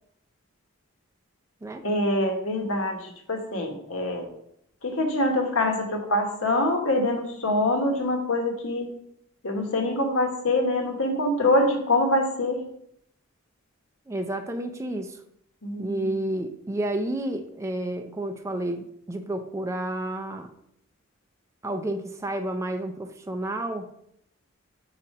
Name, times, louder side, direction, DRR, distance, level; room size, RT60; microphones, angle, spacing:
voice 1, 1.8-4.3 4.8-8.9 9.4-12.6 15.6-16.1, left 1 dB, 70° left, 3 dB, 1.2 m, -25 dB
voice 2, 14.1-15.2 15.8-20.5 21.6-23.9, right 1 dB, 15° right, 6 dB, 0.4 m, -30 dB
5.0 x 4.2 x 5.4 m, 0.73 s
head